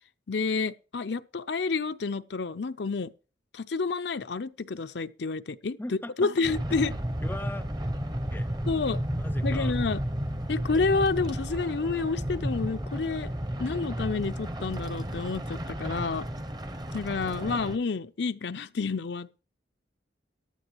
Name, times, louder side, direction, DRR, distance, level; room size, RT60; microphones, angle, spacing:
voice 1, 0.3-3.1 3.5-5.8 6.2-6.9 8.7-9.0 9.4-10.0 10.5-13.3 13.6-16.3 16.9-19.4, left 4 dB, 65° left, 0.6 m, -29 dB
voice 2, 5.8-6.3 7.2-7.6 8.3-8.5 9.2-9.8, left 1 dB, 10° left, 0.6 m, -39 dB
sound 1, 6.4-17.8, equal, 20° right, 1.0 m, -32 dB
15.0 x 10.5 x 3.0 m
head